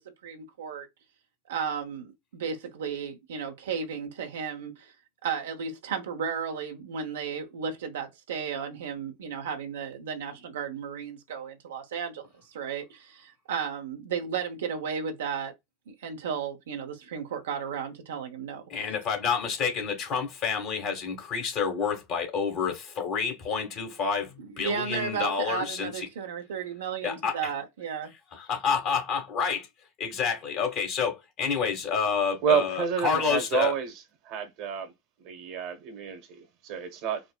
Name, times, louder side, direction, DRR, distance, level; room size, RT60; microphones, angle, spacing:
voice 1, 0.2-0.9 1.5-4.9 5.2-15.5 15.9-18.9 24.4-28.1, right 6 dB, 70° right, 0.7 m, -34 dB
voice 2, 18.7-26.1 27.0-27.4 28.4-29.7 30.0-33.7, left 6 dB, 50° left, 1.6 m, -29 dB
voice 3, 32.4-33.9 34.2-34.9 35.2-37.2, right 8 dB, 55° right, 1.1 m, -29 dB
4.7 x 2.0 x 2.3 m
figure-of-eight pair, 75°, 0 cm